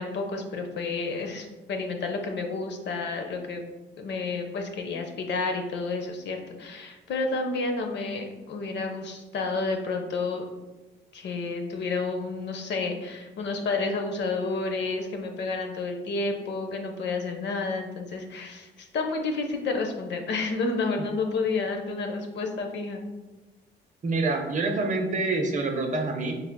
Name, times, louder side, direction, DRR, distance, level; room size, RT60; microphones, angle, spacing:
voice 1, 0.0-3.6 4.0-10.5 11.1-23.0, left 3 dB, 60° left, 4 dB, 0.6 m, -30 dB
voice 2, 24.0-26.4, right 3 dB, 40° right, 3 dB, 0.6 m, -26 dB
4.3 x 3.2 x 2.2 m, 1.1 s
cardioid pair, 90°, 20 cm